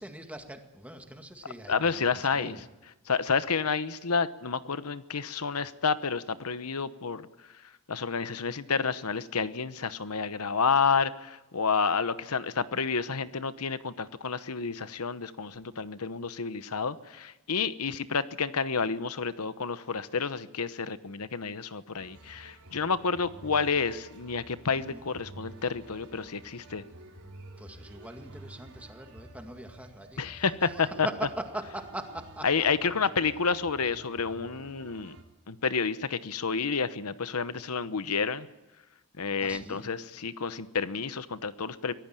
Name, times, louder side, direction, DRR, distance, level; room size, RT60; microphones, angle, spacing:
voice 1, 0.0-2.6 24.7-25.0 27.6-30.2 30.6-32.5 39.4-39.9, right 1 dB, 5° right, 5 dB, 2.0 m, -41 dB
voice 2, 1.7-2.6 3.1-7.3 7.9-26.8 30.2-31.1 32.4-35.1 35.5-38.5 39.2-41.9, left 5 dB, 90° left, 14 dB, 1.0 m, -30 dB
sound 1, 22.0-35.2, right 1 dB, 80° right, 4.4 m, -50 dB
24.0 x 18.0 x 9.1 m, 1.0 s
head